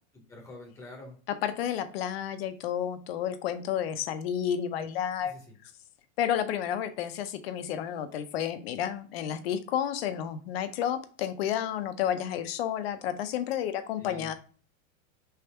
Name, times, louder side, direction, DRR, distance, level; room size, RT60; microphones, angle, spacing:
voice 1, 0.1-1.2 5.2-5.4 14.0-14.3, left 2 dB, 5° left, -1 dB, 0.7 m, -46 dB
voice 2, 1.3-5.3 6.2-14.3, left 9 dB, 45° left, 10 dB, 0.5 m, -31 dB
3.5 x 3.3 x 4.2 m, 0.40 s
supercardioid pair, 170°, 42 cm